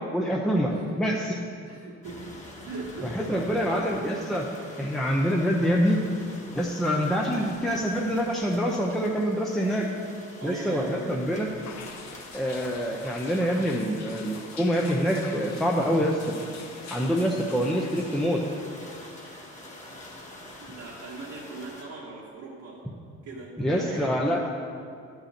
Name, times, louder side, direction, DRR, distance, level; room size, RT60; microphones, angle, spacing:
voice 1, 0.1-1.4 3.0-4.5 4.8-6.0 6.5-9.9 10.4-11.5 12.3-16.4 16.9-18.4 23.6-24.5, equal, ahead, -2 dB, 0.8 m, -26 dB
voice 2, 0.7-1.0 1.6-2.3 2.7-4.1 10.4-11.3 20.6-22.8 23.2-24.5, right 3 dB, 70° right, -7 dB, 1.7 m, -40 dB
sound 1, 2.0-21.8, left 1 dB, 25° left, 1.8 m, -46 dB
sound 2, 11.6-18.2, left 5 dB, 60° left, 0.9 m, -45 dB
12.0 x 5.5 x 4.4 m, 2.2 s
cardioid pair, 90°, 30 cm